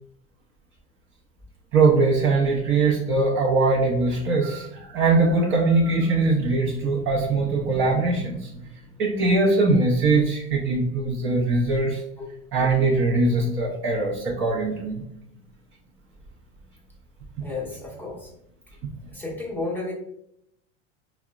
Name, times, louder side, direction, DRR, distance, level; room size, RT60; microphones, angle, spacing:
voice 1, 1.7-4.7 4.9-8.5 9.0-12.0 12.5-15.0, right 3 dB, 35° right, -3 dB, 0.5 m, -21 dB
voice 2, 17.4-18.3 19.1-19.9, left 3 dB, 5° left, -5 dB, 0.7 m, -32 dB
3.6 x 2.0 x 2.3 m, 0.76 s
supercardioid pair, 115°, 35 cm